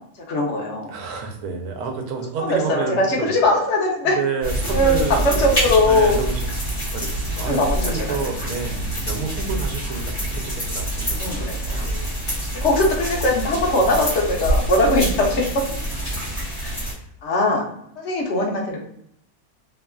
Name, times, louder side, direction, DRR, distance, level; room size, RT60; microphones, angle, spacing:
voice 1, 0.3-0.9 2.4-4.2 4.7-6.2 7.4-7.8 8.1-8.2 11.1-11.9 12.5-15.6 16.6-16.7 17.2-17.6 18.0-18.8, left 1 dB, 60° left, -2 dB, 0.8 m, -20 dB
voice 2, 0.9-3.3 4.0-5.4 5.9-6.4 6.9-10.0 10.3-12.2, right 5 dB, 80° right, 3 dB, 1.1 m, -29 dB
sound 1, 4.4-16.9, right 1 dB, 25° left, 1.0 m, -26 dB
2.9 x 2.3 x 2.3 m, 0.72 s
omnidirectional pair, 1.6 m